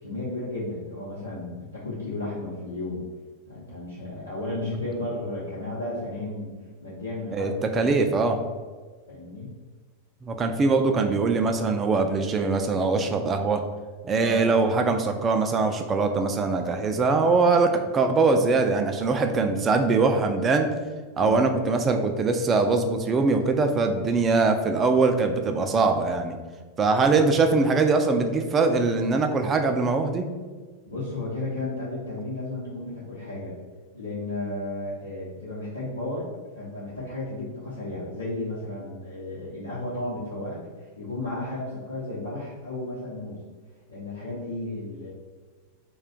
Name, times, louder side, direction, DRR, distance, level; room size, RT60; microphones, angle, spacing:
voice 1, 0.0-3.0 3.5-6.5 6.8-8.1 9.1-9.5 14.1-14.5 19.3-19.5 21.2-21.4 30.9-33.6 33.9-43.4 43.9-45.1, left 2 dB, 80° left, -10 dB, 0.8 m, -33 dB
voice 2, 7.3-8.4 10.2-13.6 14.0-20.7 21.2-26.4 26.8-30.3, right 3 dB, 25° right, 5 dB, 0.3 m, -22 dB
2.4 x 2.2 x 3.7 m, 1.4 s
figure-of-eight pair, 90°, 0 cm